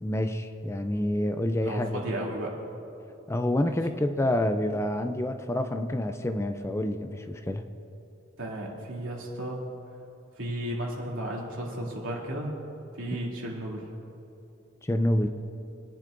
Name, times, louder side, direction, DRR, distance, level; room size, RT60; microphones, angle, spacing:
voice 1, 0.0-2.0 3.3-7.7 14.8-15.3, left 1 dB, 15° left, 7 dB, 0.5 m, -28 dB
voice 2, 1.6-2.5 8.4-9.7 10.4-12.5 12.9-13.8, right 1 dB, 75° right, -4 dB, 2.8 m, -34 dB
24.0 x 10.5 x 2.6 m, 2.8 s
head